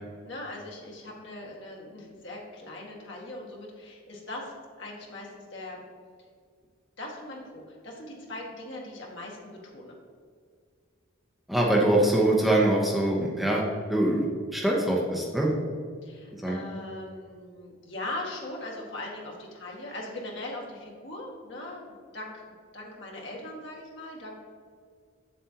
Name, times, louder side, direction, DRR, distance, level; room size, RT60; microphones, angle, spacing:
voice 1, 0.2-4.5 4.8-5.8 7.0-9.9 16.0-22.4 22.7-24.3, left 1 dB, 60° left, -2 dB, 1.9 m, -40 dB
voice 2, 11.5-15.5 16.4-16.6, right 1 dB, ahead, -4 dB, 0.8 m, -24 dB
8.3 x 7.3 x 2.9 m, 2.1 s
head